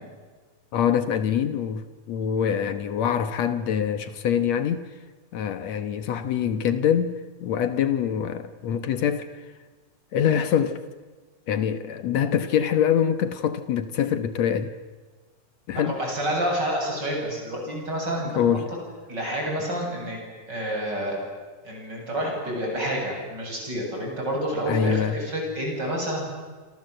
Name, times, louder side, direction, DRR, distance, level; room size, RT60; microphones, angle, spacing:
voice 1, 0.7-4.8 5.3-7.1 7.4-9.4 10.1-10.8 11.5-14.7 15.7-16.0 18.3-18.7 24.7-25.2, left 8 dB, 65° left, 2.0 m, -24 dB
voice 2, 15.7-18.4 19.1-20.2 20.5-21.2 21.6-26.2, right 1 dB, 30° right, 8.8 m, -28 dB
28.5 x 27.0 x 7.8 m
omnidirectional pair, 3.9 m